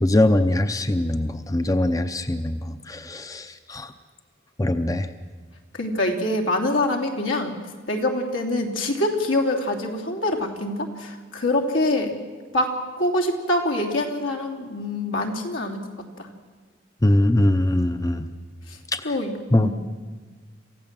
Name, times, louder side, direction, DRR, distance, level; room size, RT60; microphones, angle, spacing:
voice 1, 0.0-3.9 4.6-5.1 17.0-18.3 18.9-19.2 19.5-19.7, left 1 dB, 15° left, 9 dB, 0.6 m, -22 dB
voice 2, 5.7-7.6 7.9-12.1 12.5-15.8 19.0-19.7, left 1 dB, 85° left, 1 dB, 3.1 m, -25 dB
27.5 x 15.5 x 7.5 m, 1.4 s
head